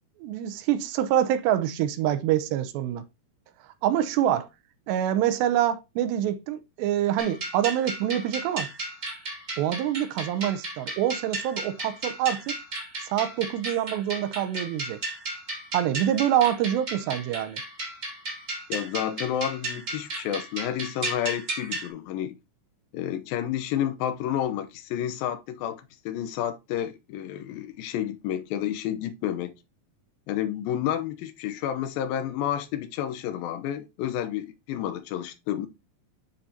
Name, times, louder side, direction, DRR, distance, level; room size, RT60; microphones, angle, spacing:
voice 1, 0.2-3.0 3.8-4.5 4.9-8.7 9.6-12.6 13.0-15.0 15.7-17.6, right 11 dB, 85° right, 2.9 m, -26 dB
sound 1, 7.2-21.9, right 2 dB, 25° right, 1.7 m, -34 dB
voice 2, 18.7-22.4 22.9-29.5 30.3-35.7, left 10 dB, 75° left, 2.4 m, -30 dB
10.5 x 4.9 x 2.8 m
omnidirectional pair, 4.8 m